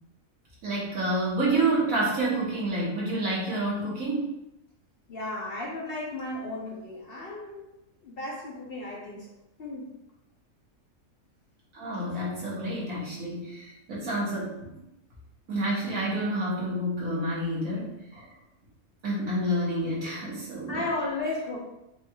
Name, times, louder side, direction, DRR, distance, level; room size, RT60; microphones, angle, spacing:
voice 1, 0.6-4.3 11.7-14.7 15.5-18.3 19.0-20.9, right 1 dB, 75° right, -6 dB, 1.7 m, -29 dB
voice 2, 5.1-7.6 8.0-9.3 9.6-9.9 20.7-21.6, left 2 dB, 50° left, -3 dB, 0.8 m, -34 dB
5.3 x 2.4 x 2.8 m, 0.88 s
omnidirectional pair, 1.4 m